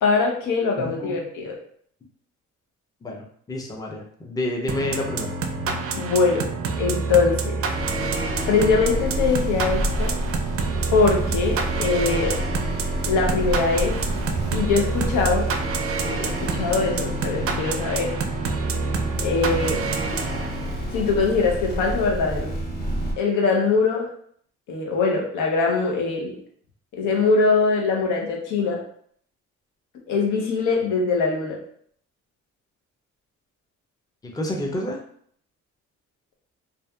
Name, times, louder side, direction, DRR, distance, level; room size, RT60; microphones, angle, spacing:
voice 1, 0.0-1.6 5.9-6.5 6.8-7.6 8.5-10.2 10.9-12.4 13.0-14.0 14.5-15.5 16.0-18.1 19.2-19.8 20.9-22.5 23.2-24.1 24.7-26.4 26.9-28.8 30.1-31.6, left 4 dB, 85° left, 0 dB, 0.7 m, -22 dB
voice 2, 0.8-1.2 3.0-5.3 34.2-35.0, left 1 dB, 15° left, 0 dB, 0.5 m, -29 dB
sound 1, 4.7-21.0, right 4 dB, 50° right, 0.4 m, -28 dB
sound 2, 7.7-23.1, equal, 30° left, 0.9 m, -29 dB
2.6 x 2.4 x 2.2 m, 0.62 s
cardioid pair, 90°, 30 cm